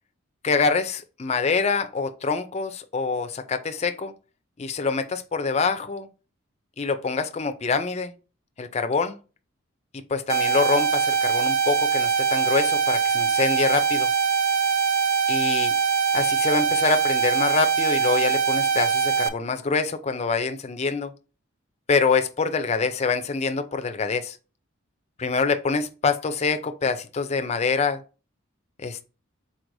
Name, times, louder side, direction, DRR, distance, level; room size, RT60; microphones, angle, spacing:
voice 1, 0.4-4.1 4.6-6.1 6.8-8.1 8.6-9.2 9.9-14.1 15.3-15.7 16.1-21.1 21.9-24.4 25.2-28.0 28.8-29.0, left 4 dB, 30° left, 0.4 m, -25 dB
sound 1, 10.3-19.3, right 6 dB, 45° right, 0.4 m, -22 dB
4.6 x 4.2 x 2.6 m
head